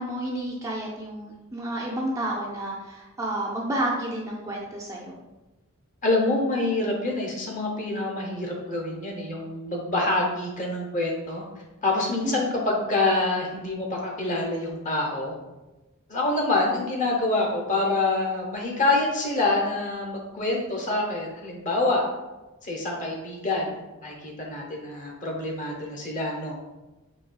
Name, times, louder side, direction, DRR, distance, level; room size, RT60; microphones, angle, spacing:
voice 1, 0.0-5.2 12.2-12.6, right 1 dB, 15° right, -3 dB, 0.3 m, -30 dB
voice 2, 6.0-11.4 11.8-15.3 16.1-22.1 22.6-26.6, left 2 dB, 35° left, -1 dB, 0.7 m, -26 dB
4.0 x 2.7 x 2.2 m, 1.1 s
head